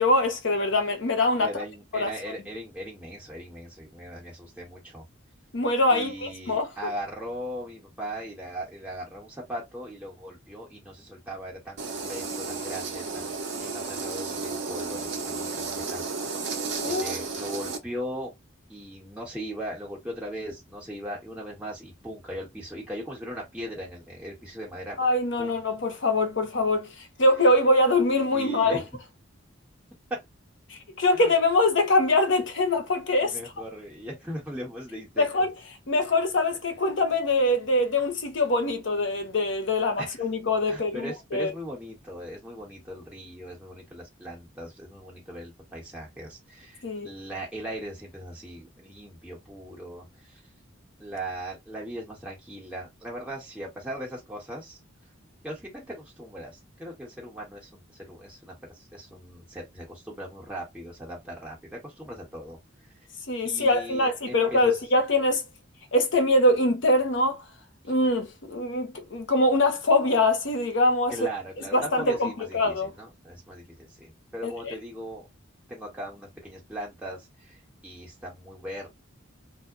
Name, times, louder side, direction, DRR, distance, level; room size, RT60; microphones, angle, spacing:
voice 1, 0.0-1.5 1.9-2.1 5.5-6.7 16.8-17.1 25.0-28.8 30.7-33.4 35.2-35.5 35.9-41.5 46.8-47.1 63.3-65.4 65.9-67.4 67.8-71.1 71.7-72.9 74.4-74.7, left 2 dB, 65° left, 0.7 m, -23 dB
voice 2, 1.4-5.0 5.9-16.0 16.8-18.3 18.7-25.0 25.4-25.6 28.3-28.9 31.1-31.3 33.2-35.5 40.0-40.2 40.6-50.4 51.0-54.8 55.4-62.6 63.4-64.8 67.8-67.9 71.1-75.3 75.7-78.9, equal, 5° right, 1.0 m, -39 dB
sound 1, 11.8-17.8, right 4 dB, 60° right, 0.7 m, -33 dB
2.1 x 2.0 x 3.5 m
head